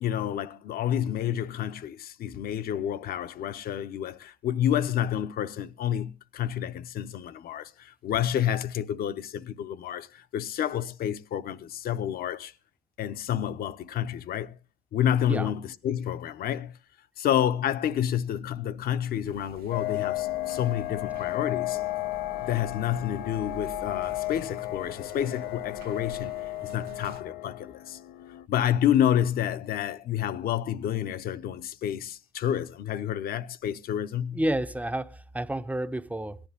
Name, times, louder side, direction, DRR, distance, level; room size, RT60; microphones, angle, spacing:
voice 1, 0.0-12.5 13.0-14.6 14.9-16.8 17.2-21.8 22.4-26.4 26.6-28.0 28.5-34.4, left 10 dB, 65° left, 0.9 m, -29 dB
sound 1, 19.2-27.2, right 7 dB, 65° right, 1.3 m, -49 dB
sound 2, 19.7-28.5, left 17 dB, 85° left, 0.6 m, -34 dB
voice 2, 34.3-36.4, right 1 dB, 10° right, 0.6 m, -30 dB
18.0 x 10.5 x 3.5 m
cardioid pair, 110°, 17 cm